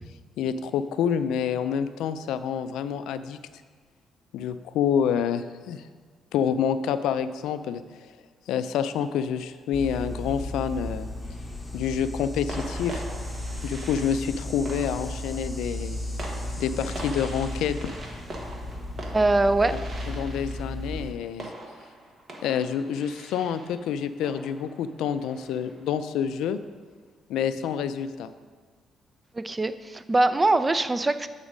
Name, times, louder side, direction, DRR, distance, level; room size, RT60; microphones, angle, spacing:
voice 1, 0.4-3.4 4.3-5.8 6.3-7.8 8.5-11.1 11.7-13.0 13.6-16.0 16.6-17.9 19.7-19.8 20.1-21.5 22.4-26.6 27.3-28.3, left 8 dB, 90° left, 12 dB, 0.3 m, -28 dB
sound 1, 9.7-21.1, left 1 dB, 20° left, 1.0 m, -35 dB
sound 2, 11.2-11.6 12.5-25.9, right 2 dB, 45° right, 1.2 m, -43 dB
voice 2, 19.1-19.8 29.4-31.3, right 2 dB, 20° right, 12 dB, 0.4 m, -22 dB
8.7 x 4.0 x 5.0 m, 1.5 s
cardioid pair, 90°, 0 cm